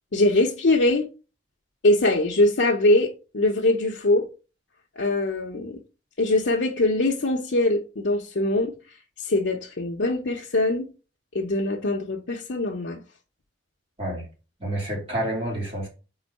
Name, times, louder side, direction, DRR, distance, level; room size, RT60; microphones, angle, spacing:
voice 1, 0.1-1.1 1.8-4.3 5.0-5.8 6.2-8.8 9.2-10.9 11.3-13.0, left 2 dB, 80° left, 0.8 m, -22 dB
voice 2, 14.6-15.9, right 1 dB, 30° right, 3.2 m, -28 dB
4.5 x 4.0 x 5.3 m
head